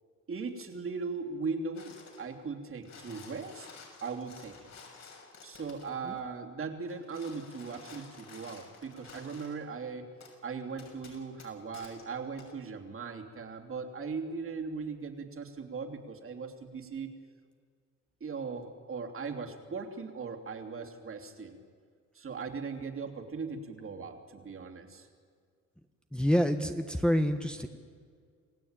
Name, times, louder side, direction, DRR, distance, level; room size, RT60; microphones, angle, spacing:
voice 1, 0.3-3.7 4.0-4.7 5.4-10.1 10.4-17.1 18.2-21.6 22.1-25.1, right 4 dB, 45° right, 3 dB, 3.1 m, -39 dB
sound 1, 1.7-2.3 2.7-5.9 6.8-9.6 10.2-10.3 10.8-12.0 12.4-12.5, left 5 dB, 60° left, 6.2 m, -52 dB
voice 2, 26.1-27.7, equal, 5° left, 5 dB, 1.4 m, -27 dB
28.0 x 16.5 x 9.0 m, 2.1 s
cardioid pair, 90°, 30 cm